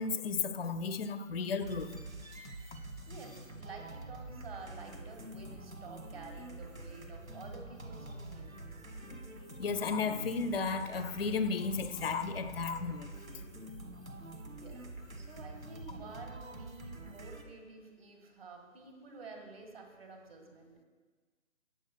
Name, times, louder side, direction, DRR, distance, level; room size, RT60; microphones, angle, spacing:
voice 1, 0.0-1.9 9.1-9.2 9.6-13.1, left 5 dB, 50° left, 9 dB, 0.5 m, -34 dB
sound 1, 1.6-17.4, right 2 dB, 85° right, 1.4 m, -46 dB
voice 2, 3.1-8.6 14.5-14.8 15.2-20.8, right 4 dB, 45° right, 3 dB, 1.7 m, -50 dB
18.0 x 6.7 x 2.2 m, 1.4 s
figure-of-eight pair, 145°, 40 cm